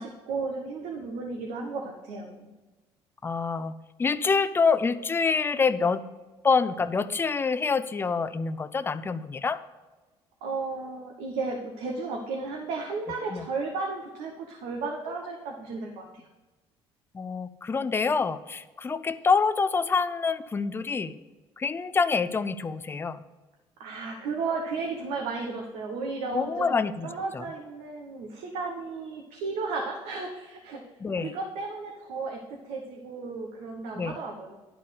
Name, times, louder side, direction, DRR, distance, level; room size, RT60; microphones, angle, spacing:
voice 1, 0.0-2.5 10.4-16.3 23.8-26.7 27.0-30.8 31.2-34.6, right 4 dB, 85° right, 0 dB, 1.1 m, -34 dB
voice 2, 3.2-3.7 4.0-6.0 6.4-9.6 13.3-13.4 17.1-21.2 21.6-23.2 26.3-27.1 27.3-27.5 31.0-31.3 33.9-34.2, left 5 dB, 20° left, 13 dB, 0.5 m, -26 dB
11.0 x 4.3 x 6.6 m, 1.2 s
cardioid pair, 105°, 11 cm